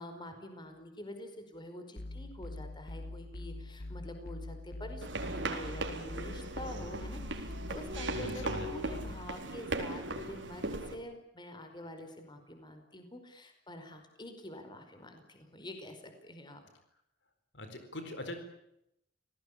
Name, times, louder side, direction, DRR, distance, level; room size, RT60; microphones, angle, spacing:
voice 1, 0.0-16.6, left 1 dB, 25° left, 7 dB, 5.0 m, -47 dB
sound 1, 2.0-9.3, left 2 dB, 55° left, 1.6 m, -44 dB
sound 2, 5.0-10.9, right 2 dB, 80° right, 4.3 m, -38 dB
voice 2, 8.1-9.1 17.5-18.4, left 1 dB, 70° left, 7 dB, 4.4 m, -42 dB
29.0 x 19.0 x 8.7 m, 0.80 s
head